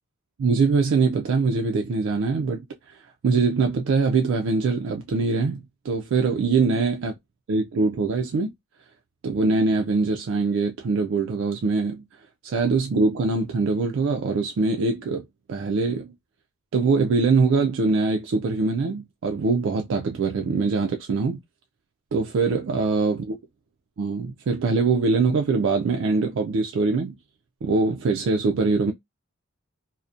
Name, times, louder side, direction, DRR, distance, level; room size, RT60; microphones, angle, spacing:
voice 1, 0.4-2.6 2.9-3.0 3.2-7.1 7.5-8.5 9.2-12.0 12.4-16.1 16.7-21.4 22.1-23.4 24.0-27.1 27.6-28.9, right 4 dB, 60° right, 0.3 m, -23 dB
2.6 x 2.1 x 2.4 m
head